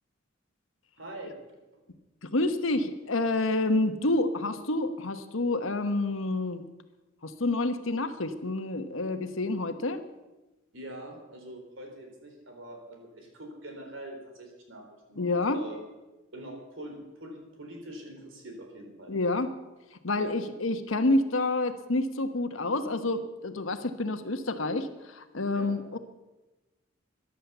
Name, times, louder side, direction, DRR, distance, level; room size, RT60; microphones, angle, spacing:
voice 1, 1.0-1.3 1.7-1.8 10.7-14.8 15.1-15.8 16.3-19.1 20.2-20.4 25.5-25.7, right 1 dB, 70° right, 3 dB, 3.9 m, -44 dB
voice 2, 2.2-6.6 7.2-10.0 15.2-15.6 19.1-19.5 20.0-26.0, left 2 dB, 80° left, 9 dB, 1.2 m, -28 dB
14.0 x 11.0 x 6.9 m, 1.1 s
head